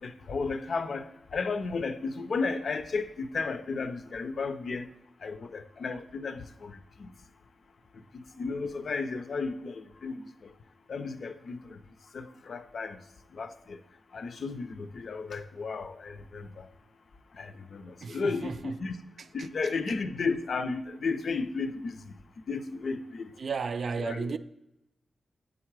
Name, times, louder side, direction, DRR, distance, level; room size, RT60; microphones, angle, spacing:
voice 1, 0.0-4.9 5.2-7.1 8.1-10.5 10.9-11.8 12.1-13.0 13.3-13.8 14.1-16.7 17.3-19.0 19.3-22.2 22.5-23.3 24.0-24.4, left 4 dB, 70° left, 0.5 m, -34 dB
voice 2, 18.0-18.8 19.4-19.5 23.4-24.4, right 5 dB, 65° right, 0.3 m, -34 dB
7.9 x 3.7 x 4.6 m
wide cardioid pair, 90°, 0 cm